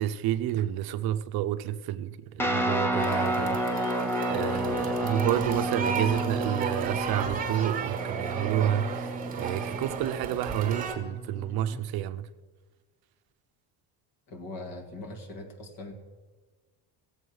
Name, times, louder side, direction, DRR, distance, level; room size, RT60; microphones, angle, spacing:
voice 1, 0.0-4.0 4.3-12.3, right 11 dB, 60° right, 0.6 m, -30 dB
Guitar, 2.4-11.8, equal, 5° left, 0.4 m, -31 dB
sound 1, 3.0-11.0, right 6 dB, 20° right, 1.4 m, -34 dB
voice 2, 14.3-15.9, left 2 dB, 50° left, 1.7 m, -41 dB
16.5 x 7.8 x 6.3 m
cardioid pair, 180°, 42 cm